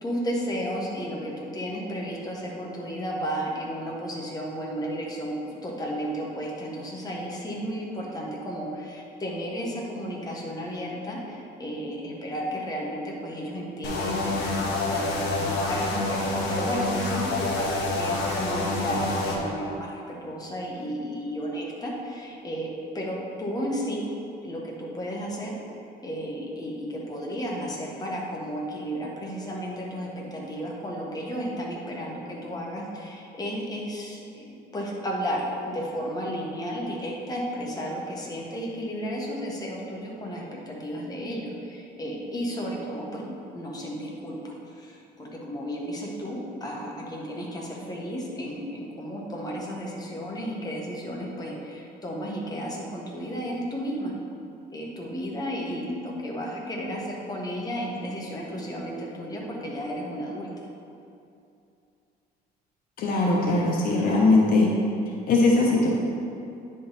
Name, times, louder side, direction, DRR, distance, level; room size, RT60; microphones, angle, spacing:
voice 1, 0.0-5.3 5.6-24.0 24.4-25.6 26.0-54.1 54.7-60.5, equal, 20° left, -3 dB, 1.4 m, -33 dB
sound 1, 13.8-19.4, left 2 dB, 85° left, 1.2 m, -27 dB
voice 2, 63.0-64.7 65.3-65.9, left 2 dB, 60° left, -2 dB, 0.9 m, -20 dB
9.8 x 3.9 x 4.0 m, 2.6 s
cardioid pair, 110°, 17 cm